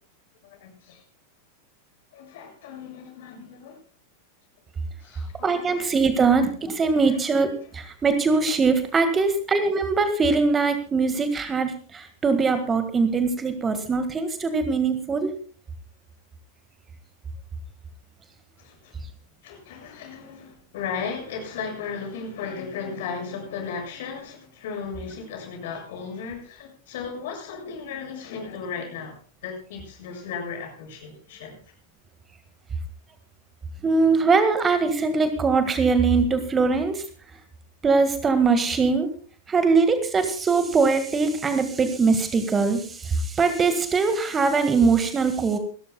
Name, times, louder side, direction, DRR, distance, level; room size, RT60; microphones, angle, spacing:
voice 1, 0.4-1.0 2.1-3.8 5.0-5.9 7.0-7.2 18.6-19.0 19.4-31.5, left 6 dB, 55° left, 2 dB, 7.2 m, -36 dB
voice 2, 5.4-15.3 33.8-37.0 37.8-39.1 39.5-45.6, right 4 dB, 20° right, 9 dB, 1.8 m, -22 dB
28.5 x 13.5 x 2.3 m, 0.39 s
figure-of-eight pair, 90°, 0 cm